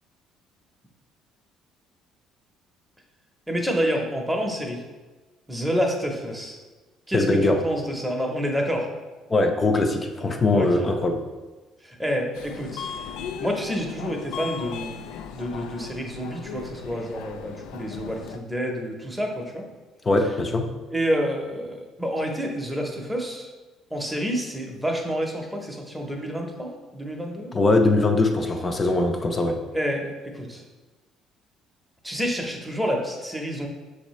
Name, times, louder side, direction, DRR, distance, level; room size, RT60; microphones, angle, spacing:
voice 1, 3.5-4.8 5.5-6.6 7.1-8.9 10.5-10.9 11.8-12.9 13.4-15.1 15.3-19.7 20.9-23.5 23.9-27.5 29.7-30.6 32.0-33.7, equal, 5° right, 1 dB, 0.8 m, -28 dB
voice 2, 7.1-7.6 9.3-11.2 20.0-20.7 27.5-29.6, left 2 dB, 25° left, 4 dB, 0.5 m, -21 dB
Subway metro underground, 12.3-18.4, left 7 dB, 85° left, 0.3 m, -37 dB
6.1 x 2.7 x 3.1 m, 1.2 s
cardioid pair, 100°, 0 cm